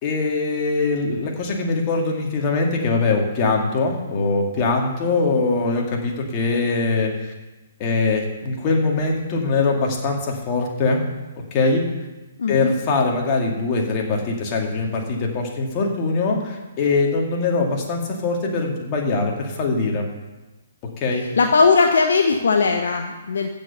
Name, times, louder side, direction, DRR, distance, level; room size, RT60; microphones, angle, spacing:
voice 1, 0.0-7.3 7.8-11.0 11.5-11.8 12.5-20.1 21.0-21.2, left 3 dB, 30° left, 0 dB, 2.4 m, -22 dB
voice 2, 12.4-12.7 21.4-23.6, left 4 dB, 60° left, 4 dB, 0.9 m, -18 dB
15.0 x 5.3 x 6.8 m, 1.1 s
figure-of-eight pair, 125°, 0 cm